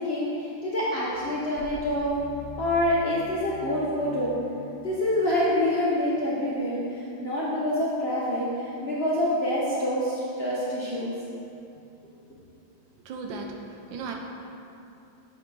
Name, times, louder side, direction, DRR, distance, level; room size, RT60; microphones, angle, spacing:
voice 1, 0.0-2.1 2.6-4.3 4.8-11.1, left 1 dB, 60° left, -7 dB, 0.6 m, -26 dB
sound 1, 1.1-5.8, left 2 dB, 85° left, 1.3 m, -43 dB
voice 2, 13.1-13.6 13.9-14.1, right 4 dB, 85° right, 2 dB, 1.4 m, -35 dB
7.1 x 3.8 x 4.6 m, 2.7 s
omnidirectional pair, 2.0 m